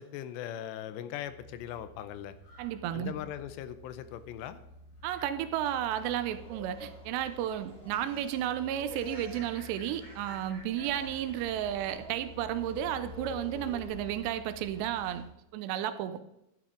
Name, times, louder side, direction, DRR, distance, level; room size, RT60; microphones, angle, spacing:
voice 1, 0.0-2.4 2.9-4.6, left 11 dB, 80° left, 12 dB, 2.8 m, -40 dB
sound 1, 1.2-15.3, equal, 65° left, 5.6 m, -50 dB
voice 2, 2.6-3.1 5.0-15.3 15.5-16.2, right 11 dB, 80° right, 12 dB, 2.7 m, -33 dB
sound 2, 6.0-15.2, equal, ahead, 1.4 m, -50 dB
11.5 x 11.0 x 3.8 m, 0.84 s
omnidirectional pair, 5.0 m